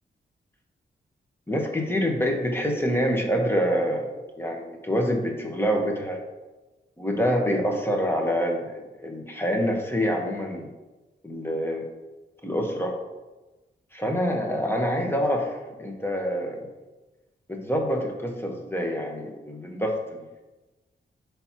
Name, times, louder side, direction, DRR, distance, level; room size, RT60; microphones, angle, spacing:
voice 1, 1.5-4.1 4.4-6.2 7.0-10.7 11.2-11.9 12.4-12.9 13.9-16.6 17.5-20.4, equal, 10° left, 1 dB, 1.2 m, -26 dB
10.5 x 3.5 x 2.9 m, 1.1 s
cardioid pair, 75°, 19 cm